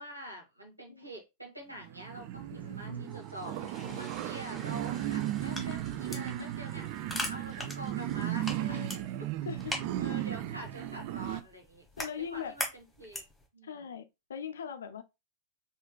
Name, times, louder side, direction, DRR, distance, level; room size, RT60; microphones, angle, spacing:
voice 1, 0.0-6.8 7.3-9.1 10.0-11.9 12.2-13.2 13.5-13.8, right 1 dB, 85° right, 1.5 m, -46 dB
sound 1, 1.8-11.4, right 13 dB, 45° right, 0.4 m, -36 dB
voice 2, 2.5-3.1 3.5-4.0 6.4-6.5 8.6-8.9 9.5-9.7 12.0-12.6 13.6-15.0, left 7 dB, 65° left, 0.4 m, -41 dB
sound 2, 3.0-9.6, right 1 dB, 10° right, 2.0 m, -54 dB
sound 3, 5.2-13.5, left 1 dB, 5° left, 1.1 m, -42 dB
4.3 x 3.2 x 2.3 m
figure-of-eight pair, 90°, 0 cm